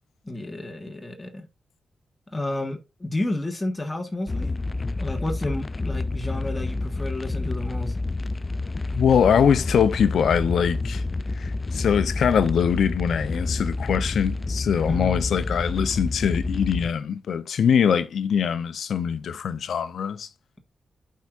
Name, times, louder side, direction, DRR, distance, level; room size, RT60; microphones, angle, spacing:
voice 1, 0.2-1.4 2.3-4.6 5.0-7.9 14.9-15.2, left 1 dB, 15° left, 1.5 m, -31 dB
sound 1, 4.3-16.9, left 2 dB, 35° left, 0.4 m, -29 dB
voice 2, 8.9-11.0 11.4-20.3, left 7 dB, 80° left, 0.6 m, -22 dB
11.5 x 4.7 x 2.5 m
cardioid pair, 70°, 0 cm